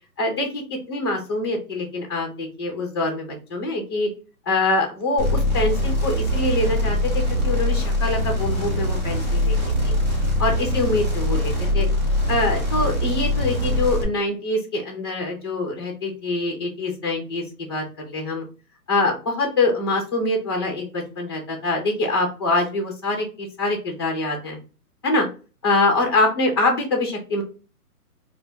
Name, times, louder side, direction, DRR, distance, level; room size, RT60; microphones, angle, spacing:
voice 1, 0.2-4.1 4.5-9.5 9.8-10.0 10.4-11.9 12.3-17.4 17.7-18.4 18.9-24.6 25.0-25.3 25.6-27.4, left 2 dB, 15° left, 2 dB, 0.6 m, -24 dB
sound 1, 5.2-14.0, left 1 dB, 30° right, 1.0 m, -22 dB
4.1 x 2.4 x 2.7 m, 0.34 s
hypercardioid pair, 165°, 45 cm